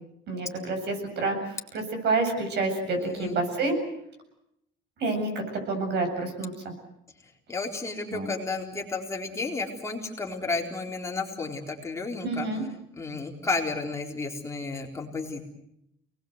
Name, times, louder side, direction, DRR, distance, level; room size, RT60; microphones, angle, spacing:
voice 1, 0.3-1.4 1.7-3.8 5.0-6.5 8.1-8.3 12.2-12.6, right 3 dB, 60° right, 4 dB, 7.7 m, -28 dB
voice 2, 3.0-3.4 7.5-12.5 13.0-15.4, left 3 dB, 15° left, 0 dB, 4.0 m, -32 dB
29.5 x 20.0 x 8.1 m, 0.80 s
cardioid pair, 160°, 20 cm